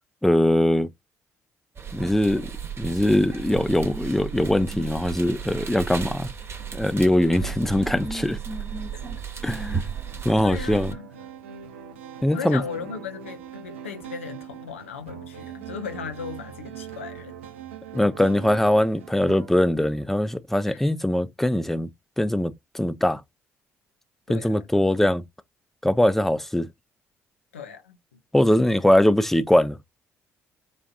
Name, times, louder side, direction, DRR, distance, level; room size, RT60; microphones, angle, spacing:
voice 1, 0.2-0.9 1.9-2.5 2.8-6.3 6.7-8.4 9.4-9.8 10.2-10.9 12.2-12.6 17.9-21.9 22.2-23.2 24.3-25.2 25.8-26.7 28.3-29.8, left 1 dB, 5° left, 0.4 m, -21 dB
sound 1, 1.8-10.9, right 6 dB, 40° right, 0.9 m, -34 dB
sound 2, 6.6-19.5, right 8 dB, 80° right, 0.4 m, -43 dB
voice 2, 10.4-11.1 12.3-17.4 20.7-20.8 24.3-24.7 27.5-28.2, left 6 dB, 85° left, 0.5 m, -37 dB
3.7 x 2.5 x 2.3 m
figure-of-eight pair, 45°, 7 cm